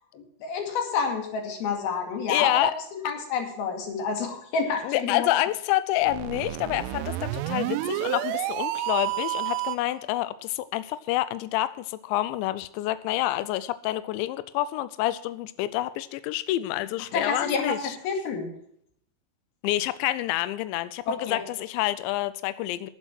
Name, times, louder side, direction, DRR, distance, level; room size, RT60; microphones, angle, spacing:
voice 1, 0.1-5.3 17.1-17.8 18.0-18.5 21.1-21.4, left 5 dB, 55° left, 4 dB, 3.8 m, -29 dB
voice 2, 2.3-2.7 4.8-18.0 19.6-22.9, left 15 dB, 90° left, 14 dB, 2.5 m, -28 dB
sound 1, 6.0-10.0, right 16 dB, 85° right, 3.3 m, -30 dB
11.0 x 11.0 x 6.0 m, 0.69 s
omnidirectional pair, 5.9 m